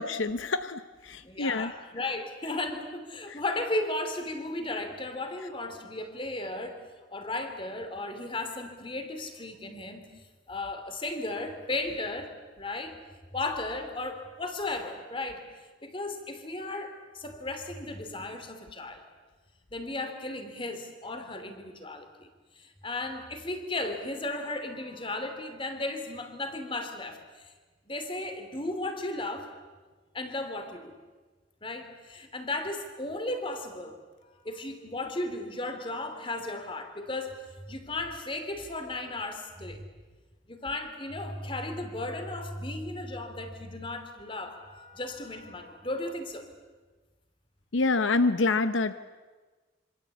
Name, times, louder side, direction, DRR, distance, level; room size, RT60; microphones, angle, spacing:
voice 1, 0.0-1.7 3.3-3.4 47.7-48.9, left 3 dB, 75° left, 11 dB, 0.9 m, -27 dB
voice 2, 1.2-6.8 7.1-10.1 10.5-13.0 13.3-15.4 15.8-19.0 19.7-22.3 22.5-27.5 27.9-29.5 30.1-30.9 31.6-37.4 37.6-39.8 40.5-46.5, left 2 dB, 25° left, 7 dB, 3.0 m, -35 dB
26.5 x 25.5 x 8.5 m, 1.3 s
head